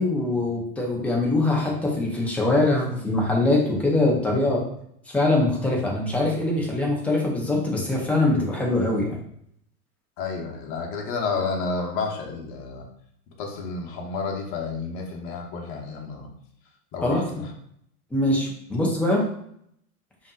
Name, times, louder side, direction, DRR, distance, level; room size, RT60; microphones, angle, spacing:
voice 1, 0.0-4.7 5.1-9.2 17.0-17.3 18.1-19.2, left 2 dB, 5° left, -2 dB, 0.4 m, -23 dB
voice 2, 10.2-12.8 13.4-16.3 16.9-17.5, left 4 dB, 40° left, 0 dB, 0.9 m, -30 dB
5.2 x 2.8 x 2.4 m, 0.70 s
hypercardioid pair, 100°, 48 cm